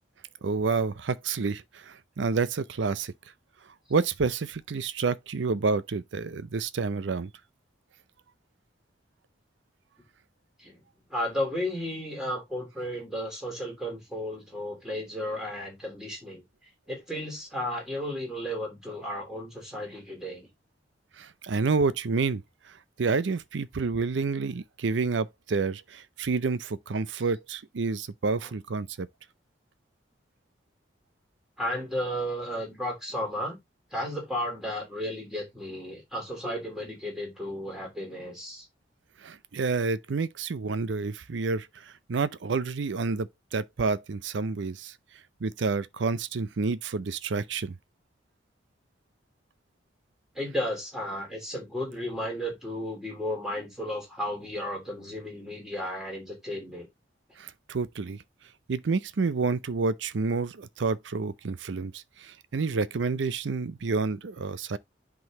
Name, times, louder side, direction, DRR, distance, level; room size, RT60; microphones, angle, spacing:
voice 1, 0.4-3.1 3.9-7.3 21.2-22.4 23.0-29.1 39.2-41.7 42.1-44.9 45.4-47.7 57.4-58.2 58.7-64.8, right 4 dB, 75° right, 0.5 m, -29 dB
voice 2, 11.1-16.4 16.9-20.5 28.4-28.5 31.6-33.6 33.9-38.6 50.3-56.9, left 1 dB, 5° right, 3.0 m, -34 dB
10.5 x 3.9 x 3.0 m
head